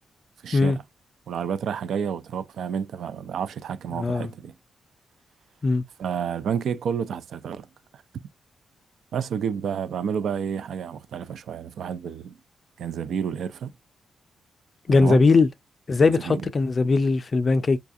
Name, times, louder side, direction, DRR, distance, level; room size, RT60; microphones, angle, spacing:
voice 1, 0.4-0.8 1.3-4.5 6.0-7.7 7.9-8.0 9.1-12.4 12.8-13.7 14.9-15.2 16.0-16.5, right 7 dB, 75° right, 0.4 m, -30 dB
voice 2, 4.0-4.3 5.6-5.8 14.9-15.5 15.9-17.8, left 3 dB, 40° left, 0.3 m, -20 dB
4.8 x 2.3 x 2.5 m
cardioid pair, 100°, 0 cm